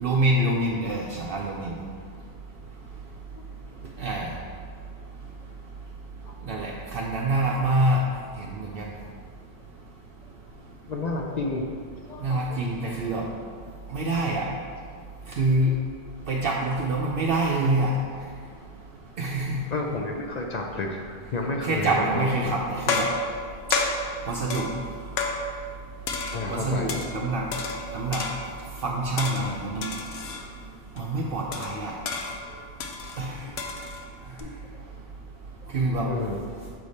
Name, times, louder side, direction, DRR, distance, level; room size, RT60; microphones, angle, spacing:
voice 1, 0.0-1.7 4.0-4.3 6.5-8.0 8.4-8.9 12.2-13.2 13.9-14.5 15.4-15.7 16.3-17.9 19.2-19.6 21.6-23.1 24.3-24.7 26.5-27.4 27.9-28.2 28.8-29.9 31.0-31.9 33.2-33.3 35.7-36.1, right 2 dB, 65° right, -2 dB, 0.8 m, -26 dB
voice 2, 10.9-11.6 12.1-12.6 19.7-22.5 26.3-27.3 28.1-28.2 29.4-29.5 31.5-31.9 32.5-32.6 34.4-34.8 35.6-35.7 36.0-36.4, left 3 dB, 50° left, 1 dB, 0.6 m, -32 dB
sound 1, 22.0-22.3 22.9-25.8 26.1-27.2 27.5-28.7 29.2-30.5 31.0-31.1 31.5-34.4, left 3 dB, 80° left, 0.9 m, -31 dB
6.3 x 4.9 x 4.1 m, 2.1 s
omnidirectional pair, 1.0 m